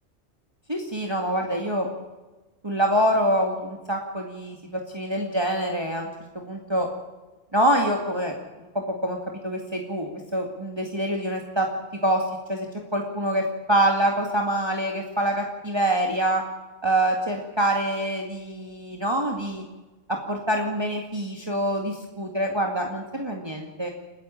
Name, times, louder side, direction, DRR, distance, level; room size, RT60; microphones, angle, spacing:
voice 1, 0.7-1.9 2.6-6.9 7.5-8.3 8.6-9.2 9.4-11.7 12.0-12.2 12.5-12.7 12.9-16.4 16.8-19.6 20.1-23.9, right 1 dB, 20° right, 1 dB, 2.1 m, -25 dB
29.0 x 10.5 x 8.7 m, 1.2 s
omnidirectional pair, 1.3 m